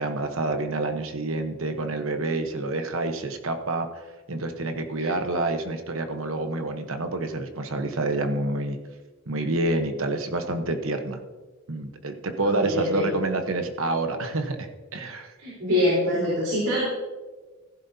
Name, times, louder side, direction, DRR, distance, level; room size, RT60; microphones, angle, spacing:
voice 1, 0.0-4.0 4.3-8.8 9.3-11.2 11.7-15.3, right 2 dB, 70° right, 6 dB, 1.1 m, -28 dB
voice 2, 12.4-13.1 15.4-16.9, left 1 dB, 85° right, -7 dB, 4.0 m, -24 dB
15.5 x 11.0 x 2.8 m, 1.3 s
head